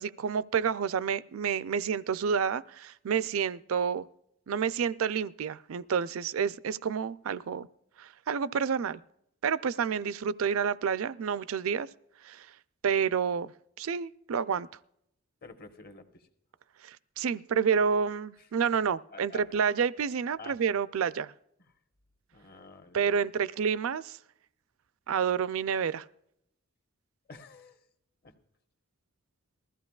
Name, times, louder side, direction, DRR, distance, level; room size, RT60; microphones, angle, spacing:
voice 1, 0.0-4.1 4.5-7.7 8.0-9.0 9.4-11.9 12.2-12.5 12.8-13.5 13.8-14.7 16.8-21.3 22.9-24.2 25.1-26.0, right 6 dB, 70° right, 17 dB, 0.4 m, -29 dB
voice 2, 15.4-16.3 18.4-18.5 19.1-19.5 20.4-20.6 22.3-23.3 27.3-27.9 28.2-28.3, left 3 dB, 45° left, 6 dB, 1.1 m, -49 dB
20.0 x 14.5 x 2.4 m, 0.77 s
head